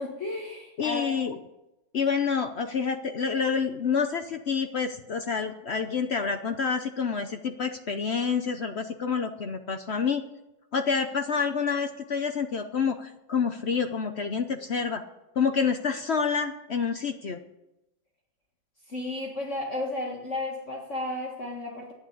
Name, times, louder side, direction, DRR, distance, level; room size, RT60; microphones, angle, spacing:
voice 1, 0.0-1.2 18.9-21.9, left 2 dB, 40° left, -1 dB, 1.9 m, -33 dB
voice 2, 0.8-1.4 1.9-10.2 10.7-15.0 15.4-17.4, left 6 dB, 70° left, 6 dB, 0.6 m, -28 dB
11.0 x 10.0 x 8.5 m, 0.93 s
omnidirectional pair, 2.1 m